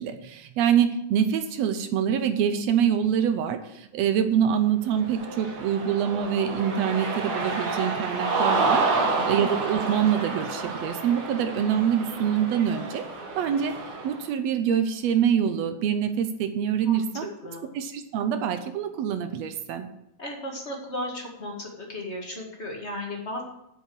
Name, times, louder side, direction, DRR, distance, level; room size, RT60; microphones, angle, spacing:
voice 1, 0.0-13.0 13.4-13.7 14.0-17.3 17.7-19.9, right 8 dB, 75° right, 8 dB, 1.6 m, -25 dB
Cheering, 5.0-14.2, right 3 dB, 50° right, 2.1 m, -29 dB
voice 2, 8.9-9.4 16.8-17.0 17.4-17.7 20.2-23.4, left 1 dB, 30° left, 0 dB, 1.4 m, -35 dB
8.2 x 7.0 x 7.8 m, 0.81 s
omnidirectional pair, 3.8 m